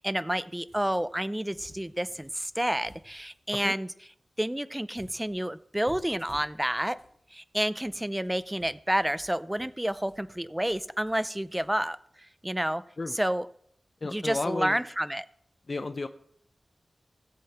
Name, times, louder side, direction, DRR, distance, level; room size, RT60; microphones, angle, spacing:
voice 1, 0.0-3.9 4.4-7.0 7.3-12.8 13.1-13.5 14.0-15.3, right 1 dB, 10° right, 15 dB, 0.5 m, -30 dB
sound 1, 0.7-1.2 1.5-3.6 4.9-7.1 7.6-11.9, right 1 dB, 55° right, 6.4 m, -55 dB
voice 2, 14.0-14.8 15.7-16.1, left 3 dB, 45° left, 8 dB, 0.6 m, -32 dB
17.0 x 7.6 x 4.3 m, 0.67 s
wide cardioid pair, 80°, 0 cm